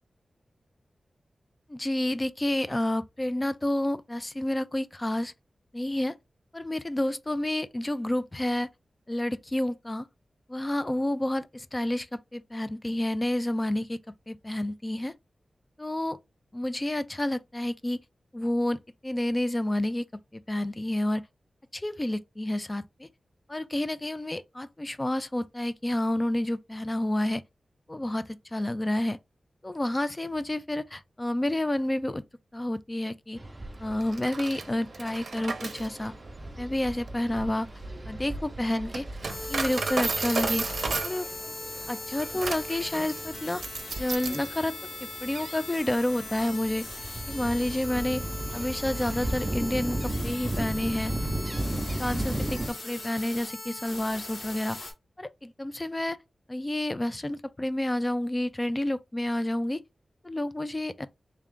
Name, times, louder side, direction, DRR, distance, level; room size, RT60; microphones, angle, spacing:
voice 1, 1.7-5.3 5.7-6.1 6.5-8.7 9.1-10.1 10.5-14.0 14.3-15.1 15.8-16.2 16.5-18.0 18.3-20.1 20.3-21.2 21.7-23.1 23.5-27.4 27.9-29.2 29.6-32.2 32.5-33.4 33.8-36.1 36.6-37.7 38.1-39.1 39.5-40.6 41.0-41.3 41.9-43.6 44.0-44.7 45.0-46.8 47.3-48.2 48.5-51.1 51.9-54.9 55.2-56.2 56.5-59.8 60.2-61.1, left 1 dB, 20° left, 0.3 m, -29 dB
sound 1, 33.4-52.7, right 1 dB, 20° right, 0.6 m, -36 dB
Coin (dropping), 34.0-44.5, right 4 dB, 60° right, 0.6 m, -34 dB
sound 2, 39.3-54.9, left 2 dB, 85° left, 1.9 m, -40 dB
3.3 x 2.4 x 3.6 m
wide cardioid pair, 115°, 0 cm